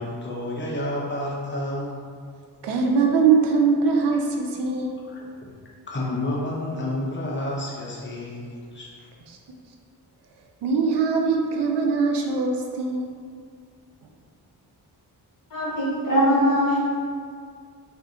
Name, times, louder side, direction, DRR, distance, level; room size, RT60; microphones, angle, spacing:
voice 1, 0.0-2.0 5.1-5.2 5.9-9.1, left 1 dB, 30° left, -4 dB, 0.8 m, -30 dB
voice 2, 2.6-5.0 9.3-9.4 10.6-13.1, right 5 dB, 80° right, 1 dB, 0.5 m, -22 dB
voice 3, 15.5-16.8, equal, 50° left, -7 dB, 1.3 m, -21 dB
2.6 x 2.5 x 3.6 m, 2.1 s
cardioid pair, 60°, 41 cm